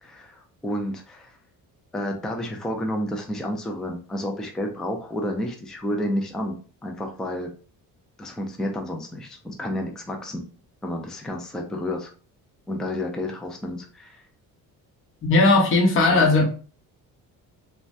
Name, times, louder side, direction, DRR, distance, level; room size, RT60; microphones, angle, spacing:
voice 1, 0.0-1.4 1.9-7.5 8.2-10.4 10.8-12.1 12.7-14.2 16.1-16.4, left 1 dB, ahead, 3 dB, 0.3 m, -30 dB
voice 2, 15.2-16.4, left 2 dB, 35° left, 0 dB, 0.8 m, -17 dB
3.1 x 2.2 x 2.6 m, 0.38 s
cardioid pair, 130°, 36 cm